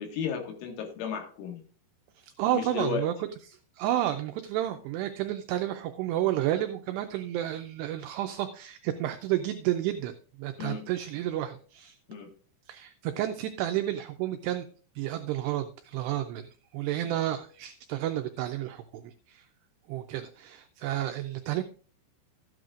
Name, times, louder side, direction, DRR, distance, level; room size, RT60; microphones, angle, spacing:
voice 1, 0.0-1.6 2.5-3.0 10.6-10.8 12.1-12.3 17.0-17.1, left 7 dB, 85° left, 2 dB, 4.2 m, -34 dB
voice 2, 2.4-3.1 3.5-10.1 10.4-12.0 12.7-14.7 15.0-16.5 16.7-19.4 19.9-21.6, right 13 dB, 85° right, 8 dB, 2.4 m, -31 dB
13.5 x 9.3 x 2.5 m, 0.42 s
omnidirectional pair, 5.4 m